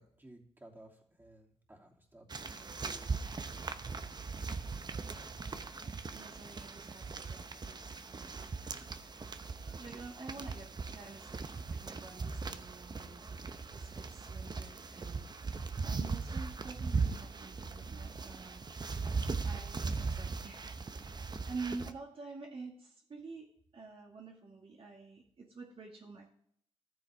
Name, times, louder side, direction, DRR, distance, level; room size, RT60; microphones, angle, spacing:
voice 1, 0.0-3.2, right 1 dB, 20° right, -1 dB, 3.0 m, -57 dB
sound 1, 2.3-21.9, right 4 dB, 40° right, 0.8 m, -39 dB
voice 2, 5.8-9.3 9.6-13.4 13.7-18.6 19.0-20.6 21.5-26.3, right 4 dB, 55° right, 0 dB, 2.2 m, -48 dB
14.0 x 12.0 x 3.6 m, 0.66 s
cardioid pair, 75°, 11 cm